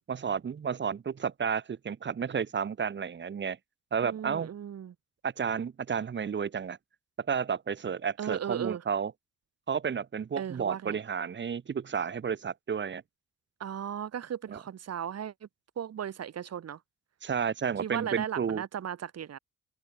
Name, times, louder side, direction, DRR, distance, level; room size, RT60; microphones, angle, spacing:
voice 1, 0.1-3.6 3.9-4.5 5.2-6.8 7.3-9.1 9.7-13.0 14.5-14.6 17.2-18.6, right 7 dB, 40° right, 1.2 m, -31 dB
voice 2, 4.0-4.9 8.2-8.8 10.4-11.0 13.6-15.5 15.8-16.8 17.8-19.4, right 9 dB, 55° right, 3.0 m, -36 dB
open air
cardioid pair, 90°, 30 cm